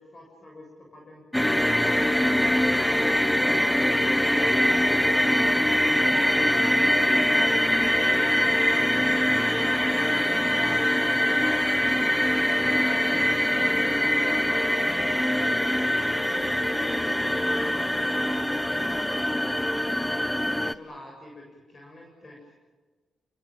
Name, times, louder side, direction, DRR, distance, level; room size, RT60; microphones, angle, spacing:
voice 1, 0.0-2.0 2.4-22.5, left 1 dB, 35° left, -1 dB, 7.3 m, -46 dB
sound 1, 1.3-20.7, left 1 dB, 5° left, 1.0 m, -23 dB
28.0 x 21.0 x 9.0 m, 1.3 s
cardioid pair, 100°, 0 cm